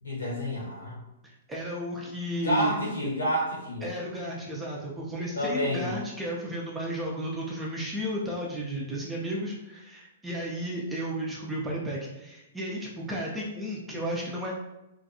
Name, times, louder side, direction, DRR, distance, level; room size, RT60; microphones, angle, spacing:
voice 1, 0.0-1.0 2.4-3.9 5.3-5.9, equal, 75° left, -5 dB, 0.9 m, -29 dB
voice 2, 1.5-2.7 3.8-14.5, right 1 dB, 10° right, -4 dB, 0.5 m, -33 dB
2.5 x 2.3 x 2.6 m, 0.95 s
figure-of-eight pair, 110°, 0 cm